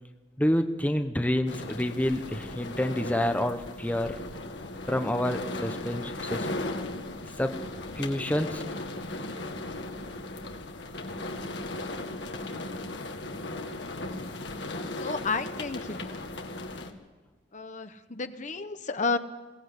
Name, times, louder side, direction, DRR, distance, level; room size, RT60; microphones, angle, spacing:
voice 1, 0.4-4.2 4.9-6.5 7.4-7.6 8.0-8.6, left 1 dB, 10° left, 6 dB, 1.0 m, -28 dB
sound 1, 1.5-16.9, left 2 dB, 70° left, 2.0 m, -37 dB
voice 2, 14.6-16.2 17.5-19.2, left 4 dB, 40° left, 9 dB, 1.0 m, -32 dB
22.0 x 18.0 x 8.3 m, 1.3 s
head